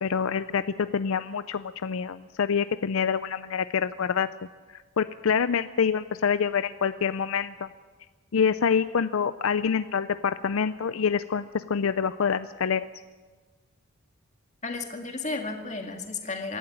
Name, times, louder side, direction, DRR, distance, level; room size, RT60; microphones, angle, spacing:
voice 1, 0.0-4.3 5.0-7.7 8.3-12.9, left 6 dB, 75° left, 13 dB, 0.5 m, -26 dB
voice 2, 14.6-16.6, left 3 dB, 35° left, 4 dB, 2.1 m, -33 dB
26.0 x 12.0 x 8.7 m, 1.4 s
head